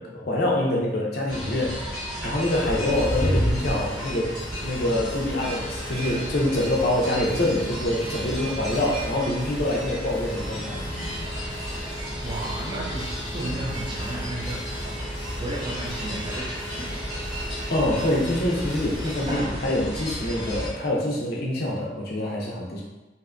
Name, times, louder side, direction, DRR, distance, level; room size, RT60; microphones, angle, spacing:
voice 1, 0.0-1.9 2.2-4.3 4.6-10.8 17.7-22.8, left 1 dB, 50° left, -2 dB, 0.5 m, -25 dB
sound 1, 1.3-20.7, equal, ahead, 0.8 m, -33 dB
sound 2, 2.4-19.4, equal, 85° right, 1.1 m, -35 dB
voice 2, 12.2-15.0 15.4-16.9 19.3-19.7, right 1 dB, 25° right, -3 dB, 0.3 m, -33 dB
2.6 x 2.2 x 2.4 m, 1.1 s
head